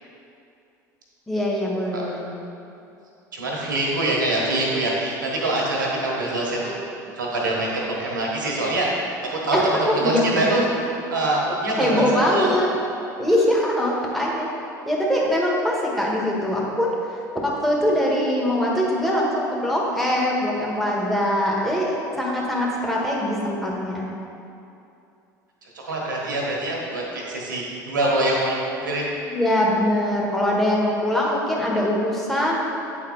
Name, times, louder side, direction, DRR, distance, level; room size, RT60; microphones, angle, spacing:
voice 1, 1.3-2.2 9.5-10.6 11.8-12.7 13.2-14.5 14.8-24.1 29.3-32.6, left 1 dB, ahead, -4 dB, 1.5 m, -22 dB
voice 2, 3.3-6.7 7.1-8.9 9.3-10.7 11.1-12.5 13.2-13.4 25.9-28.5 28.8-29.1, right 2 dB, 90° right, -3 dB, 1.3 m, -24 dB
8.4 x 4.2 x 3.9 m, 2.7 s
hypercardioid pair, 80°, 10 cm